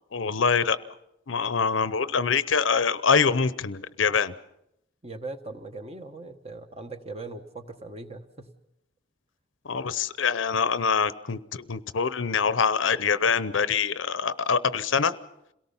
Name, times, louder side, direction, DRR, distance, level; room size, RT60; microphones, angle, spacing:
voice 1, 0.1-0.8 1.3-4.3 9.6-15.2, left 5 dB, 80° left, 15 dB, 0.8 m, -24 dB
voice 2, 5.0-8.5, right 2 dB, 35° right, 7 dB, 1.3 m, -40 dB
28.0 x 18.0 x 5.6 m, 0.82 s
head